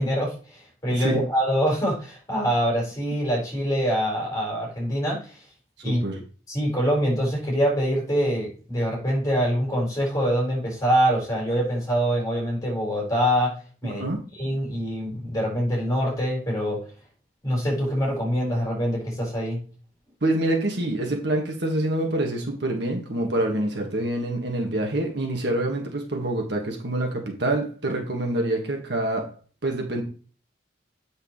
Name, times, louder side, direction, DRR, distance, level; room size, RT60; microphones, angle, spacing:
voice 1, 0.0-5.2 5.8-6.0 6.5-13.5 13.8-14.0 14.3-16.8 17.4-19.6, equal, 20° left, -3 dB, 4.5 m, -24 dB
voice 2, 0.9-1.2 5.8-6.2 13.8-14.2 20.2-29.3 29.6-30.0, right 1 dB, 60° right, 2 dB, 1.7 m, -26 dB
8.5 x 6.4 x 3.2 m, 0.38 s
head